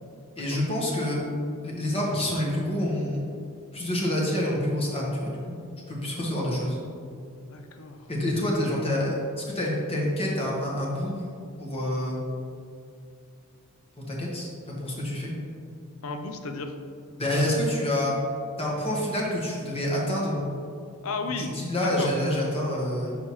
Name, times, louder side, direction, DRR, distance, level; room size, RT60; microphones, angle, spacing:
voice 1, 0.4-1.2 1.6-3.3 3.7-5.4 5.9-6.8 8.1-11.1 11.6-12.2 14.1-15.3 17.2-18.1 18.6-20.4 21.4-23.2, left 1 dB, 25° left, -4 dB, 1.1 m, -27 dB
voice 2, 7.4-8.0 16.0-16.7 21.0-21.5 21.8-22.1, left 4 dB, 70° left, 6 dB, 0.5 m, -33 dB
6.5 x 5.7 x 3.0 m, 2.4 s
head